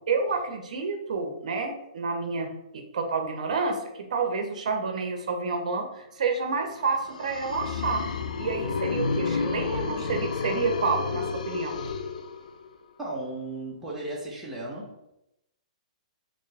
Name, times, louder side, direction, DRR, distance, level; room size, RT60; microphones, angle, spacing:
voice 1, 0.1-8.0 8.4-11.8, right 4 dB, 70° right, 5 dB, 0.6 m, -29 dB
sound 1, 6.9-12.8, left 4 dB, 85° left, 0.4 m, -31 dB
voice 2, 13.0-15.1, right 2 dB, 5° right, -5 dB, 0.7 m, -35 dB
3.4 x 2.7 x 3.3 m, 0.83 s
hypercardioid pair, 165°, 4 cm